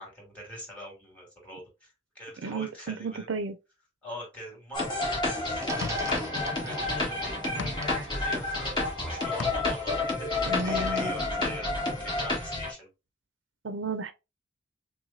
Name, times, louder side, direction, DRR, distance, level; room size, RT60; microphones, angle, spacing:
voice 1, 0.0-3.3 4.0-12.9, equal, 5° left, 2.6 m, -43 dB
voice 2, 2.4-3.5 10.5-11.1 13.6-14.1, right 3 dB, 70° right, 0.5 m, -33 dB
sound 1, 4.7-12.7, left 2 dB, 25° left, 1.7 m, -30 dB
sound 2, 4.9-5.1 5.7-6.6 6.8-9.0 9.2-10.0, left 4 dB, 65° left, 0.4 m, -38 dB
sound 3, 5.6-9.7 10.5-12.2, equal, 15° right, 0.6 m, -41 dB
5.9 x 2.2 x 2.6 m
head